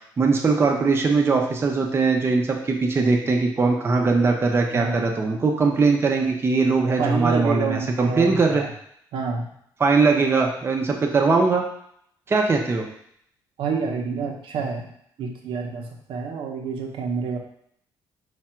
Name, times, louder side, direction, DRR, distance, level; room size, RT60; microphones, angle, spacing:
voice 1, 0.2-8.6 9.8-11.6 12.3-12.9, right 4 dB, 30° right, 1 dB, 0.7 m, -20 dB
voice 2, 4.7-5.0 7.0-8.7 9.1-9.5 13.6-14.9 15.2-17.4, right 5 dB, 85° right, 1 dB, 0.8 m, -28 dB
4.9 x 2.4 x 4.4 m, 0.69 s
cardioid pair, 130°, 8 cm